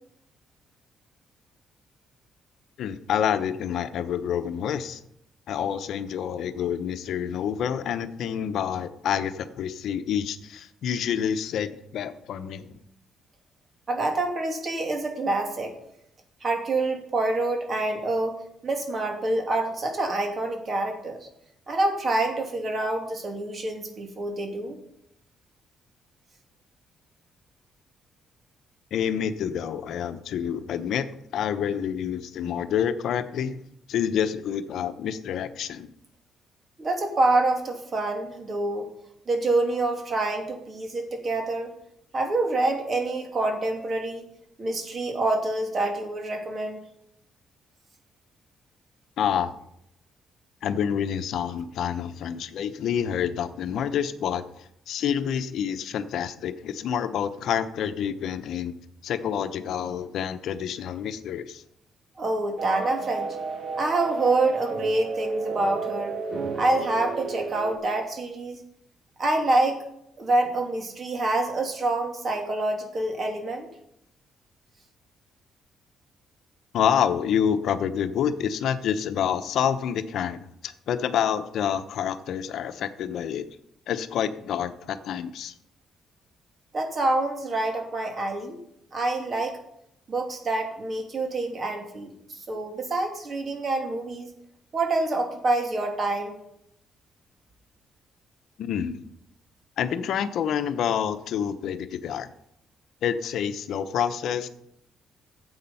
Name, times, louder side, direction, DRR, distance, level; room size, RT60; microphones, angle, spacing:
voice 1, 2.8-5.0 5.5-12.8 28.9-31.1 31.3-33.6 33.9-35.9 49.2-49.5 50.6-58.7 59.0-61.6 76.7-83.5 83.9-85.5 98.6-99.0 99.8-102.3 103.0-104.5, left 8 dB, 75° left, 10 dB, 0.8 m, -28 dB
voice 2, 13.9-15.7 16.4-21.3 21.7-24.8 36.8-38.9 39.3-41.7 42.1-44.3 44.6-46.8 62.2-63.4 63.8-66.2 66.5-68.6 69.2-69.8 70.2-73.7 86.7-88.6 88.9-89.6 90.1-94.3 94.7-96.4, right 2 dB, 45° right, 4 dB, 2.6 m, -26 dB
sound 1, 62.6-67.8, right 3 dB, 60° right, 2.4 m, -32 dB
12.0 x 8.0 x 5.5 m, 0.77 s
cardioid pair, 90°, 0 cm